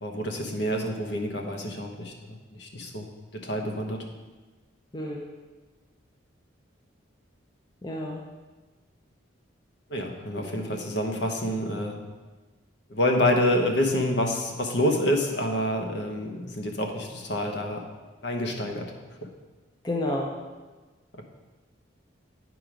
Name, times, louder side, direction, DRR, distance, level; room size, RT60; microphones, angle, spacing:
voice 1, 0.0-4.1 9.9-12.0 12.9-17.8 18.2-18.9 19.2-19.3 21.1-21.2, left 1 dB, 55° left, 3 dB, 1.0 m, -27 dB
voice 2, 4.9-5.2 7.8-8.2 19.8-20.3, left 1 dB, 20° left, 0 dB, 0.6 m, -30 dB
9.2 x 4.7 x 5.0 m, 1.3 s
head